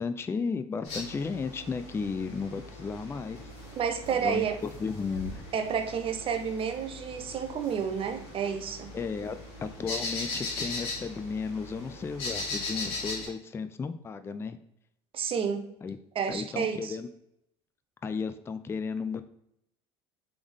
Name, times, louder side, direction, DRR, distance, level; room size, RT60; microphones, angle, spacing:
voice 1, 0.0-3.4 4.1-5.5 8.9-14.6 15.8-16.0 16.3-17.1 18.0-19.2, left 5 dB, 20° left, 10 dB, 0.3 m, -34 dB
sound 1, 0.8-13.3, left 2 dB, 85° left, 1.5 m, -39 dB
voice 2, 3.8-4.6 5.5-8.9 15.1-15.7 16.1-17.0, right 7 dB, 40° right, 6 dB, 0.7 m, -30 dB
3.5 x 3.4 x 3.5 m, 0.78 s
supercardioid pair, 80°, 14 cm